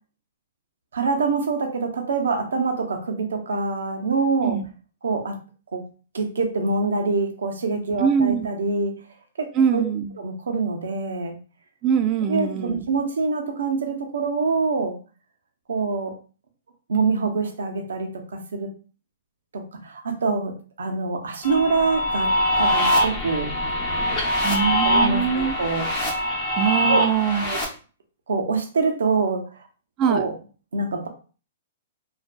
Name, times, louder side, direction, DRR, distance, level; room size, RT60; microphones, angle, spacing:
voice 1, 0.9-4.6 5.0-5.4 5.7-5.8 6.1-9.0 9.4-9.8 10.2-11.4 12.3-15.0 15.7-16.1 16.9-18.7 19.5-23.5 24.8-25.9 26.9-27.0 27.3-27.6 28.3-29.7 30.1-30.3 30.7-31.1, right 4 dB, 90° right, 4 dB, 0.6 m, -25 dB
voice 2, 8.0-8.5 9.5-10.1 11.8-12.8 24.4-25.5 26.6-27.4 30.0-30.2, right 7 dB, 30° right, 7 dB, 0.3 m, -22 dB
sound 1, 21.4-27.6, equal, 35° left, 0.9 m, -23 dB
2.5 x 2.3 x 2.2 m, 0.37 s
hypercardioid pair, 145°, 0 cm